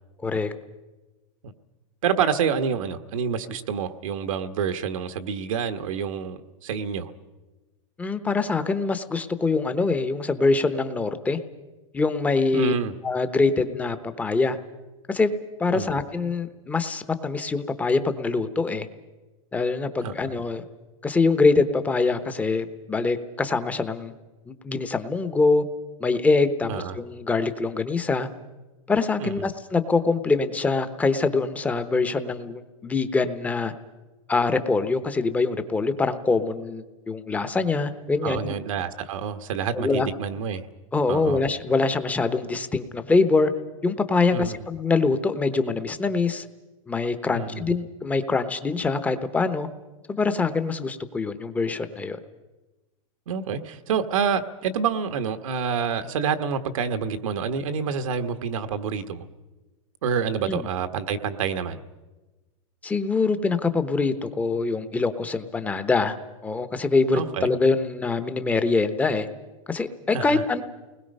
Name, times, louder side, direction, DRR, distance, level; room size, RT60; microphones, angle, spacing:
voice 1, 0.2-0.5 8.0-11.4 11.9-12.7 13.0-14.6 15.1-15.3 15.6-18.9 19.5-20.6 21.0-24.1 24.5-25.6 26.0-28.3 28.9-33.7 34.3-38.6 39.7-40.1 40.9-43.5 43.8-46.4 46.9-49.7 50.1-52.2 60.5-60.7 62.8-66.2 66.4-69.3 69.7-70.6, left 3 dB, 10° left, 11 dB, 0.9 m, -24 dB
voice 2, 2.0-7.1 12.5-12.9 15.7-15.9 20.0-20.3 26.7-27.0 29.2-29.3 38.2-40.7 41.1-41.4 44.3-44.5 47.3-47.6 53.3-59.2 60.0-61.8 67.1-67.5 70.1-70.4, right 6 dB, 75° right, 9 dB, 1.4 m, -27 dB
29.5 x 20.5 x 5.4 m, 1.2 s
supercardioid pair, 160°, 17 cm